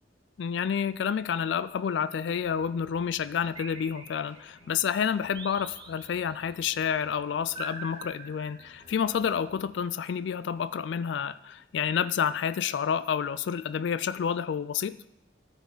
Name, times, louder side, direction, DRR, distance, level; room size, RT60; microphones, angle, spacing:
voice 1, 0.4-15.0, left 7 dB, 70° left, 15 dB, 0.3 m, -29 dB
sound 1, 2.4-9.8, left 2 dB, 35° left, 4.0 m, -59 dB
sound 2, 3.6-4.7 5.4-6.5 7.6-9.0, right 3 dB, 25° right, 0.7 m, -44 dB
13.5 x 5.3 x 4.9 m, 0.84 s
head